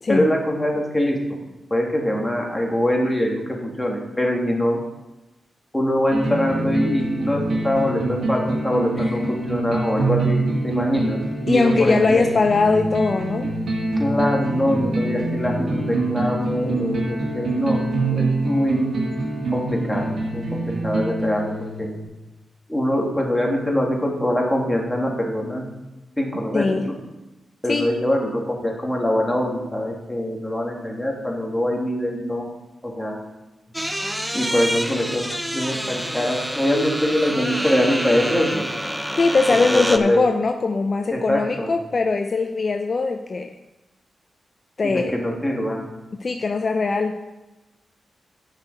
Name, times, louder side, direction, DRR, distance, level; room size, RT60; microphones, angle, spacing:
voice 1, 0.1-1.4 1.7-4.8 5.7-11.2 11.5-12.3 13.9-17.8 18.1-19.0 19.5-21.9 22.7-25.7 26.2-26.9 27.6-32.5 32.8-33.2 34.3-35.3 35.5-38.6 39.5-40.2 41.1-41.7 44.8-45.9, left 1 dB, 10° left, -1 dB, 3.0 m, -23 dB
sound 1, 6.1-22.0, right 2 dB, 70° right, 2.0 m, -25 dB
voice 2, 9.0-9.3 11.5-13.5 26.5-26.9 27.7-27.9 39.2-43.5 44.8-45.1 46.2-47.1, left 3 dB, 50° left, 6 dB, 0.6 m, -21 dB
sound 2, 33.7-40.0, equal, 5° right, 0.9 m, -27 dB
7.5 x 6.0 x 7.7 m, 1.0 s
supercardioid pair, 40°, 0 cm